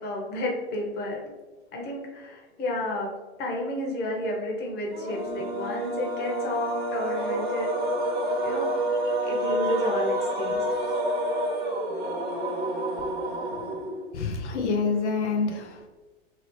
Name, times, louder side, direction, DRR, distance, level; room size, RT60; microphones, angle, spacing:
voice 1, 0.0-1.3 1.7-3.1 3.4-8.0 8.4-8.7 9.2-10.6, left 1 dB, 30° left, -1 dB, 0.9 m, -31 dB
sound 1, 4.9-14.2, right 1 dB, 30° right, 0.9 m, -28 dB
voice 2, 8.9-9.7 13.0-13.1 14.1-15.9, left 4 dB, 85° left, 3 dB, 0.5 m, -29 dB
2.9 x 2.8 x 3.1 m, 1.2 s
hypercardioid pair, 105°, 33 cm